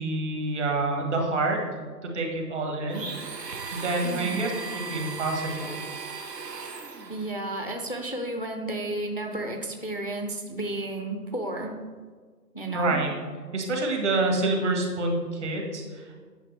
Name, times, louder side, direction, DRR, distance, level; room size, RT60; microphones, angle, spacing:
voice 1, 0.0-1.6 2.0-3.1 3.7-5.8 12.7-13.1 13.5-16.2, right 2 dB, 45° right, 1 dB, 1.6 m, -27 dB
Domestic sounds home sounds, 2.9-7.3, right 4 dB, 80° right, 1.1 m, -37 dB
voice 2, 4.0-4.4 7.1-11.8 12.5-13.0, right 2 dB, 35° left, 3 dB, 0.4 m, -32 dB
9.2 x 6.2 x 3.3 m, 1.5 s
figure-of-eight pair, 150°, 49 cm